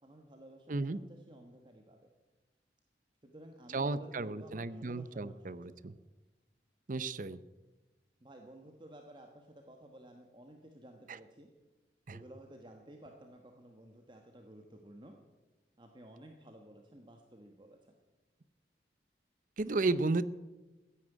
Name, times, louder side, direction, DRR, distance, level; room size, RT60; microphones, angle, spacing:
voice 1, 0.0-2.1 3.2-5.9 8.2-11.5 12.1-15.2 15.8-18.0, right 1 dB, 25° right, 3 dB, 1.3 m, -54 dB
voice 2, 0.7-1.0 3.7-5.9 6.9-7.4 12.1-12.2 19.6-20.2, right 3 dB, 45° right, 15 dB, 0.6 m, -33 dB
15.5 x 9.8 x 9.1 m, 1.2 s
head